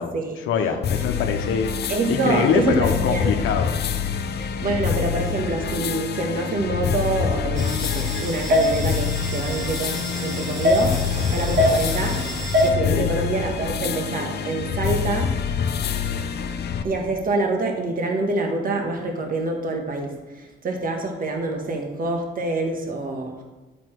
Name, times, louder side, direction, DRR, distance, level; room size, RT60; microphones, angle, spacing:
voice 1, 0.5-1.7 2.1-3.7 11.3-11.5 12.6-13.1, left 6 dB, 90° left, 4 dB, 0.9 m, -24 dB
sound 1, 0.8-16.8, left 7 dB, 55° left, 0.7 m, -26 dB
voice 2, 1.9-3.3 4.4-12.2 12.6-15.3 16.8-23.4, right 2 dB, 45° right, 2 dB, 1.6 m, -26 dB
sound 2, 7.5-12.7, left 1 dB, 65° right, 2.9 m, -24 dB
8.8 x 7.0 x 4.6 m, 1.1 s
cardioid pair, 90°, 20 cm